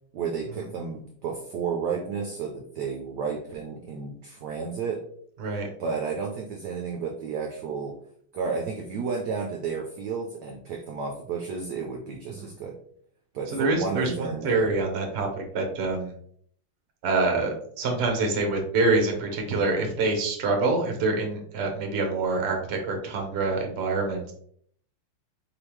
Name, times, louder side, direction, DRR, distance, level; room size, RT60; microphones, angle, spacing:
voice 1, 0.1-5.0 5.8-7.9 8.3-12.8 13.3-14.8, right 5 dB, 70° right, 2 dB, 1.0 m, -32 dB
voice 2, 13.5-16.1 17.0-24.3, right 3 dB, 45° right, 2 dB, 0.9 m, -26 dB
4.5 x 3.5 x 3.0 m, 0.62 s
omnidirectional pair, 2.3 m